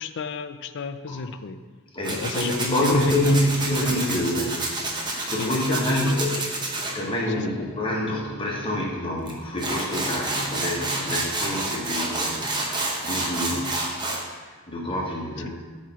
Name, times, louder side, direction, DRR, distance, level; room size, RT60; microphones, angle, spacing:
voice 1, 0.0-1.6 2.1-4.5 5.3-6.5 7.4-7.6, left 5 dB, 55° left, 10 dB, 0.4 m, -33 dB
voice 2, 1.9-4.7 4.9-6.4 6.9-14.0 14.4-15.6, left 1 dB, 25° left, -2 dB, 1.2 m, -27 dB
Tools, 2.0-6.9 9.3-9.4 9.6-14.2, right 2 dB, 20° right, 0.8 m, -29 dB
8.4 x 3.2 x 5.7 m, 1.4 s
head